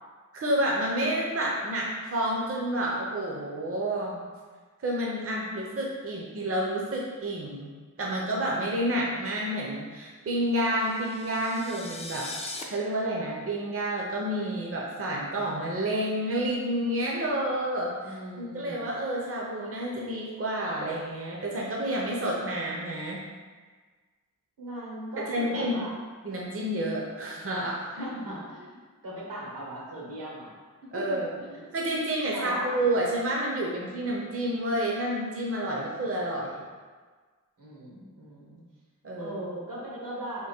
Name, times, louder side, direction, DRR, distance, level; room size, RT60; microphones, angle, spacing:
voice 1, 0.3-4.2 4.8-7.7 8.0-12.3 12.7-23.2 25.2-25.8 26.2-28.0 30.9-31.3 31.7-36.6 39.0-39.4, right 1 dB, 45° right, -3 dB, 0.6 m, -29 dB
sound 1, 10.7-12.6, left 3 dB, 20° left, 0.4 m, -40 dB
voice 2, 18.0-18.8 24.6-25.9 28.0-30.5 30.9-31.7 32.3-32.8 37.6-38.6 39.2-40.5, right 1 dB, 85° right, -5 dB, 1.2 m, -38 dB
3.7 x 2.5 x 4.3 m, 1.5 s
wide cardioid pair, 100°, 32 cm